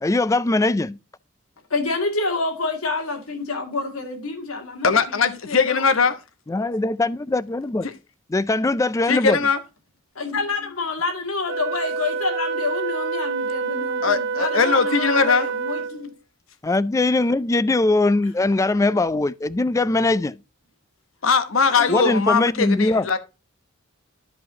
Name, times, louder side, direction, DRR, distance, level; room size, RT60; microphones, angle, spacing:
voice 1, 0.0-1.0 6.5-7.9 8.3-9.4 16.6-20.4 21.9-23.1, left 2 dB, 15° left, 0.3 m, -21 dB
voice 2, 1.7-6.0 10.2-16.1 21.7-22.1, left 3 dB, 90° left, 2.1 m, -28 dB
voice 3, 4.8-6.2 7.8-7.9 9.1-9.6 14.0-15.5 21.2-23.2, left 5 dB, 70° left, 1.0 m, -20 dB
Wind instrument woodwind instrument, 11.5-16.1, right 5 dB, 55° right, 0.6 m, -27 dB
13.0 x 5.0 x 2.7 m
head